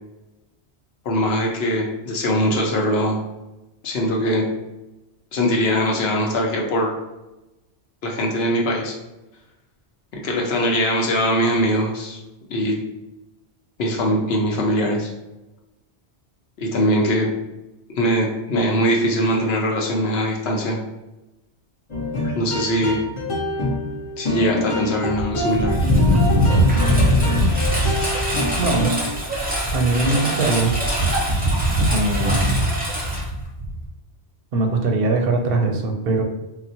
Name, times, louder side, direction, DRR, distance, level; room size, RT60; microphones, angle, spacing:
voice 1, 1.1-3.2 3.8-4.4 5.3-6.9 8.0-8.9 10.1-12.2 12.5-12.7 13.8-15.1 16.6-17.3 17.9-20.8 22.3-23.0 24.2-25.8, equal, 65° left, 0 dB, 0.9 m, -21 dB
sound 1, 21.9-29.2, left 1 dB, 35° left, 0.6 m, -26 dB
Engine, 25.1-33.9, equal, 10° right, 0.5 m, -21 dB
voice 2, 28.6-28.9 29.7-30.8 31.9-32.5 34.5-36.2, right 3 dB, 65° right, 3 dB, 0.7 m, -21 dB
3.8 x 2.0 x 2.7 m, 1.0 s
omnidirectional pair, 1.2 m